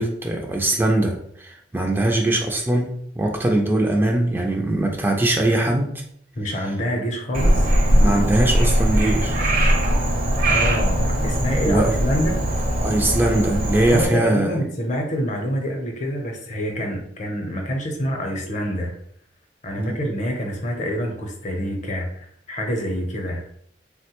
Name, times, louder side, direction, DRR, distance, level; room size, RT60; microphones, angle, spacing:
voice 1, 0.0-5.9 8.0-9.4 11.6-12.0 12.8-14.6 19.8-20.0, right 1 dB, 10° right, 1 dB, 0.3 m, -21 dB
voice 2, 6.3-7.7 10.5-12.4 13.9-18.9 19.6-23.4, equal, 45° left, 2 dB, 0.6 m, -26 dB
Frog, 7.3-14.1, equal, 55° right, 0.6 m, -20 dB
3.4 x 2.1 x 2.9 m, 0.67 s
head